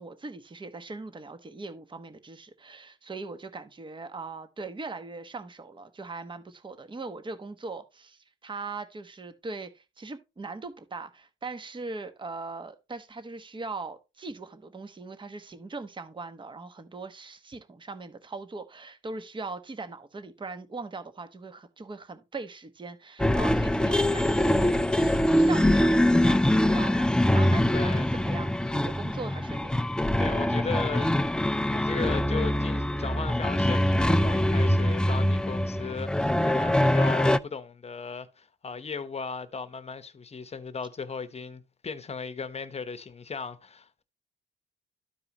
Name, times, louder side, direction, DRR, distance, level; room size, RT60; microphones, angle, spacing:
voice 1, 0.0-29.9, right 3 dB, 25° right, 1.1 m, -40 dB
sound 1, 23.2-37.4, left 1 dB, 5° left, 0.4 m, -24 dB
voice 2, 27.7-28.2 30.2-31.2 31.5-44.0, left 5 dB, 30° left, 1.0 m, -36 dB
13.0 x 4.8 x 2.9 m
cardioid pair, 90°, 20 cm